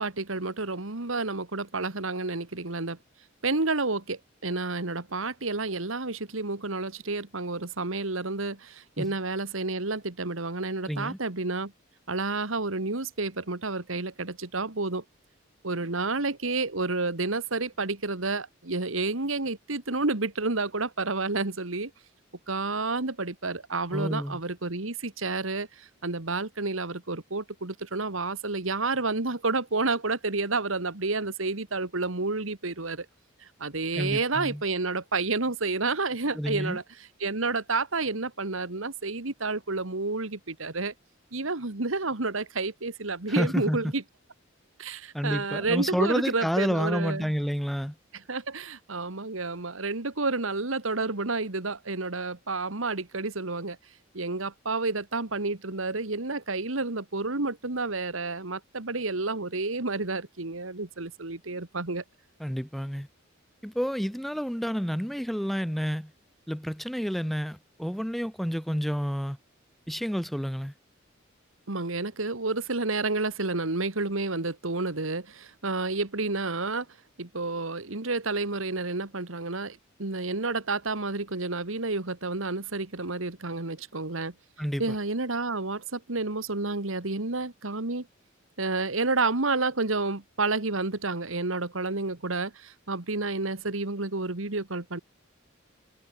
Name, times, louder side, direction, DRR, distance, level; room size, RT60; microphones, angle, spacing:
voice 1, 0.0-3.0 3.4-11.7 12.1-15.0 15.6-21.9 22.5-33.1 33.4-36.8 37.2-40.9 41.3-44.0 44.8-47.3 48.1-53.8 54.1-62.0 71.7-76.9 77.2-84.3 84.8-88.1 88.6-95.0, right 3 dB, 75° right, 2.0 m, -30 dB
voice 2, 10.8-11.2 23.9-24.4 34.0-34.6 36.3-36.8 43.3-43.9 45.1-47.9 62.4-63.1 63.6-66.1 66.5-69.4 69.9-70.7 84.6-84.9, equal, ahead, 1.5 m, -29 dB
head